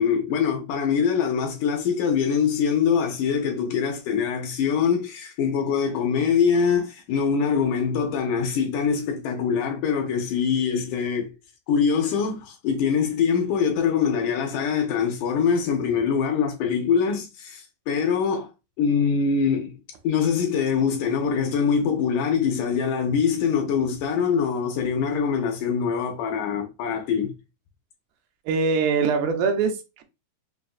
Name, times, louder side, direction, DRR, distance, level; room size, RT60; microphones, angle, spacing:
voice 1, 0.0-11.3 11.7-18.5 18.8-19.7 20.0-27.3, left 6 dB, 75° left, 2.0 m, -23 dB
voice 2, 28.5-30.0, right 5 dB, 90° right, 2.5 m, -23 dB
5.9 x 2.4 x 2.3 m
omnidirectional pair, 4.1 m